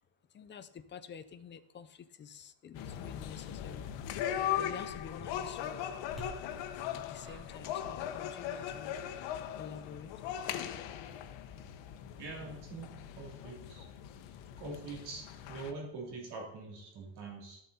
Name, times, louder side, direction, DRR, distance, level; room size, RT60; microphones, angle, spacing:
voice 1, 0.3-3.9 4.3-5.9 6.9-8.9 9.6-10.1, left 7 dB, 25° left, 11 dB, 0.5 m, -48 dB
sound 1, 2.7-15.7, left 10 dB, 75° left, 1.1 m, -39 dB
sound 2, 6.0-10.4 10.7-12.3, equal, ahead, 3.3 m, -55 dB
voice 2, 12.2-12.9 13.1-13.9 14.6-17.6, right 3 dB, 60° right, -1 dB, 3.4 m, -44 dB
13.0 x 7.5 x 4.2 m, 0.81 s
cardioid pair, 160°, 45 cm